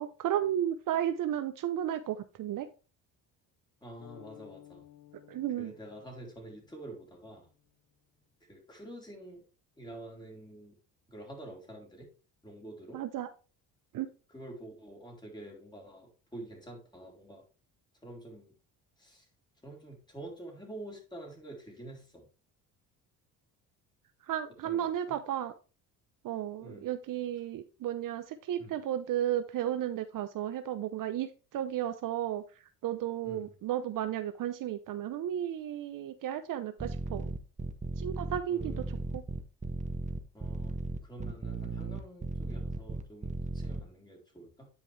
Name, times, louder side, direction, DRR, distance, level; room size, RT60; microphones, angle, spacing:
voice 1, 0.0-2.7 5.3-5.7 12.9-13.3 13.9-14.1 24.3-25.5 26.2-32.4 32.8-37.3 38.0-39.2, right 11 dB, 55° right, 10 dB, 0.8 m, -33 dB
voice 2, 3.8-4.8 5.6-7.5 8.5-9.4 9.8-10.8 11.1-12.1 12.4-13.0 14.3-17.4 18.0-18.5 19.0-19.3 19.6-22.3 24.6-25.2 26.6-26.9 28.6-28.8 33.2-33.5 38.5-39.1 40.3-44.7, right 1 dB, 10° left, 0 dB, 3.7 m, -47 dB
sound 1, 4.0-7.9, left 14 dB, 90° left, 2.0 m, -56 dB
sound 2, 36.8-43.8, right 3 dB, 20° right, 1.1 m, -36 dB
9.9 x 5.1 x 3.3 m, 0.34 s
cardioid pair, 90°, 38 cm